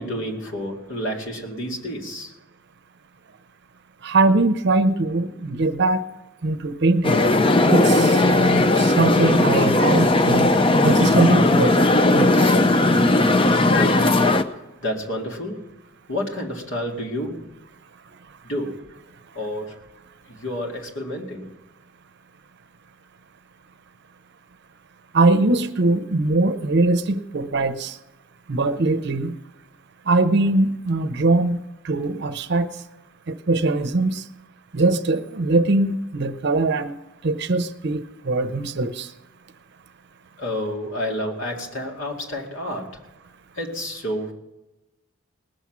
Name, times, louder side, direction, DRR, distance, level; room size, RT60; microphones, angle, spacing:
voice 1, 0.0-2.3 13.8-14.3 14.8-15.7 16.1-17.5 18.4-18.8 19.3-19.8 20.3-21.5 40.4-43.0 43.6-44.3, equal, 65° left, 0 dB, 2.4 m, -29 dB
voice 2, 4.0-6.0 6.4-7.2 7.7-10.5 10.8-12.5 25.1-28.0 28.5-29.3 30.1-32.7 33.3-34.2 34.7-36.9 37.2-39.1, right 2 dB, 55° right, 10 dB, 0.7 m, -21 dB
sound 1, 7.0-14.4, left 2 dB, 25° left, 0.5 m, -17 dB
19.5 x 7.2 x 6.0 m, 0.99 s
head